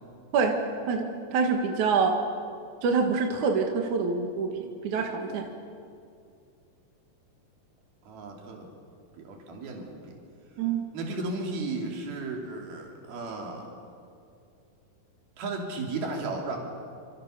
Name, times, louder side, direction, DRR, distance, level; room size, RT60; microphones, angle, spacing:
voice 1, 0.3-2.2 2.8-5.5 10.6-10.9, right 5 dB, 60° right, 3 dB, 2.9 m, -26 dB
voice 2, 8.1-8.7 9.2-10.0 10.9-13.7 15.4-16.6, right 3 dB, 80° right, 1 dB, 4.9 m, -34 dB
28.5 x 27.0 x 6.7 m, 2.4 s
omnidirectional pair, 4.3 m